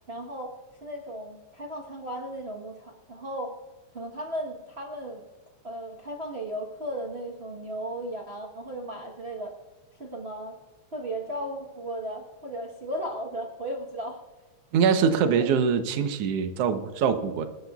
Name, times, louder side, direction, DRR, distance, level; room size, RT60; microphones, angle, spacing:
voice 1, 0.1-0.5 0.8-3.5 3.9-5.2 5.6-9.6 10.0-10.6 10.9-14.2 15.2-15.5, right 1 dB, 90° right, -3 dB, 0.5 m, -35 dB
voice 2, 14.7-17.5, right 6 dB, 65° right, 8 dB, 1.8 m, -23 dB
27.0 x 11.5 x 2.4 m, 1.3 s
omnidirectional pair, 3.3 m